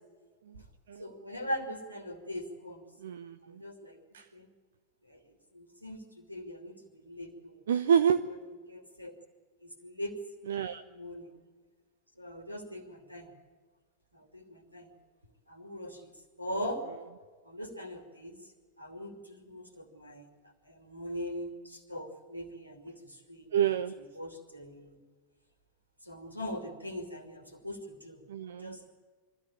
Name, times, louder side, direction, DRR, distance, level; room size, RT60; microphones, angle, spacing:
voice 1, 1.0-2.9 3.4-4.0 4.3-4.5 5.1-7.6 8.3-9.1 9.6-10.1 10.8-11.3 12.2-13.3 14.1-14.9 15.5-16.1 16.4-16.8 17.4-18.4 18.8-20.3 20.7-25.0 26.0-28.9, equal, 90° right, 5 dB, 2.7 m, -41 dB
voice 2, 3.0-3.3 4.1-4.2 7.7-8.2 10.5-10.8 23.5-23.9 28.3-28.7, right 8 dB, 65° right, 11 dB, 0.6 m, -27 dB
23.0 x 14.0 x 8.7 m, 1.5 s
figure-of-eight pair, 90°, 0 cm